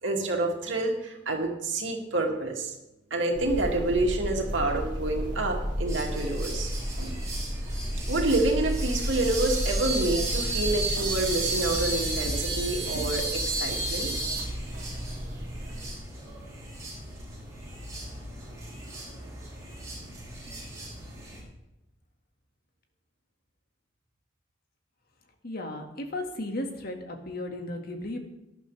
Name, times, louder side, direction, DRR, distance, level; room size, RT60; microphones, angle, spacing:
voice 1, 0.0-2.7 3.1-6.7 7.0-7.1 8.1-14.1, right 2 dB, 80° right, 1 dB, 2.5 m, -28 dB
sound 1, 3.3-16.0, equal, 45° right, 3.0 m, -33 dB
sound 2, 5.9-21.4, right 2 dB, 20° right, 5.2 m, -35 dB
voice 2, 18.7-19.1 25.4-28.2, left 1 dB, 55° left, 3 dB, 1.9 m, -35 dB
18.0 x 11.5 x 3.4 m, 0.92 s
head